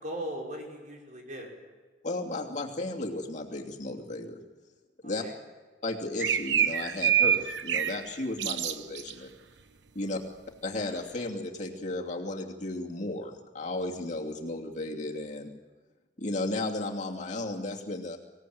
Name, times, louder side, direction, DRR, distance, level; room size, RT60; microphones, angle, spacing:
voice 1, 0.0-1.5 5.0-5.4 10.0-10.2, right 1 dB, 45° right, 0 dB, 5.7 m, -39 dB
voice 2, 2.0-4.4 5.0-5.2 5.8-9.3 9.9-10.2 10.6-15.5 16.2-18.2, left 2 dB, 45° left, -1 dB, 2.8 m, -34 dB
sound 1, 6.2-8.0 8.4-9.1, right 9 dB, 90° right, 1.0 m, -26 dB
25.5 x 17.5 x 9.5 m, 1.3 s
head